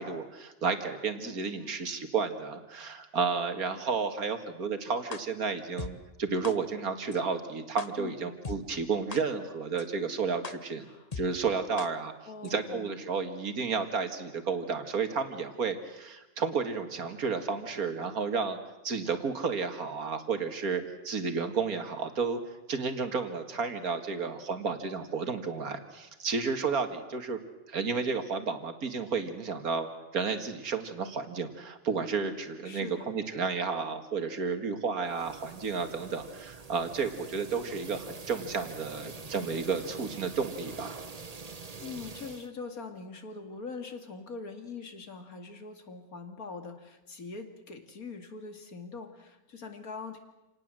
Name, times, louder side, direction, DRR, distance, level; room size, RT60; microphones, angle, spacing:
voice 1, 0.0-10.9 11.2-12.1 12.4-18.6 18.8-22.4 22.7-27.4 27.7-41.0, right 5 dB, 80° right, 8 dB, 2.4 m, -32 dB
voice 2, 1.2-1.9 8.0-8.3 10.8-11.1 12.3-13.0 32.6-33.2 41.8-50.2, left 4 dB, 80° left, 6 dB, 2.7 m, -43 dB
sound 1, 5.1-5.2 5.8-5.9 6.4-6.5 7.1-7.2 7.8-7.9 8.4-8.6 9.1-9.2 9.8-9.9 10.4-10.5 11.1-11.2 11.8-11.9 12.4-12.5, left 5 dB, 30° left, 0.9 m, -37 dB
sound 2, 35.0-42.5, right 4 dB, 30° right, 1.1 m, -45 dB
28.0 x 18.5 x 7.6 m, 1.0 s
omnidirectional pair, 1.5 m